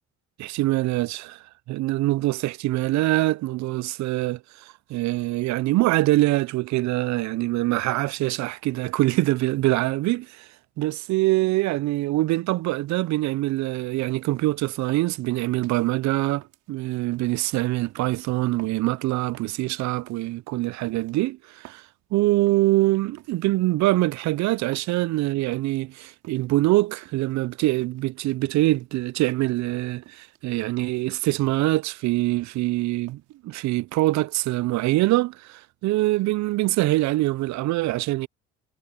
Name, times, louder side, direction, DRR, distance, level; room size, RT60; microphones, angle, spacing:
voice 1, 0.4-10.5 10.8-16.4 16.7-21.8 22.1-38.3, right 18 dB, 65° right, 0.5 m, -24 dB
sound 1, 14.1-14.5 14.9-15.9 16.4-17.4 17.9-18.1 18.6-18.9 19.3-19.6 20.1-20.3 20.8-21.9 22.5-22.7 23.2-23.5 23.9-24.3 24.7-25.1 25.5-25.8 26.2-26.6 27.0-27.4 27.8-28.1 28.6-29.6 30.0-30.4 30.8-31.1 31.5-31.8 32.1-32.8 33.1-33.4, right 17 dB, 85° right, 5.8 m, -51 dB
supercardioid pair, 75°, 30 cm